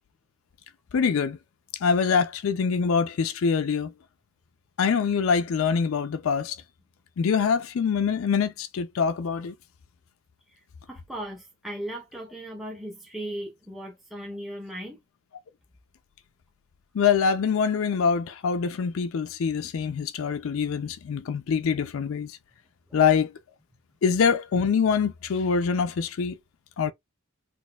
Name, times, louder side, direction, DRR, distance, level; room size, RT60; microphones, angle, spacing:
voice 1, 0.9-1.4 1.8-3.9 4.8-6.6 7.2-9.5 16.9-22.4 22.9-23.3 24.0-26.4 26.8-26.9, left 6 dB, 75° left, 0.4 m, -24 dB
voice 2, 10.9-15.0 22.9-23.0, right 1 dB, ahead, 0.6 m, -37 dB
4.1 x 2.5 x 2.2 m
head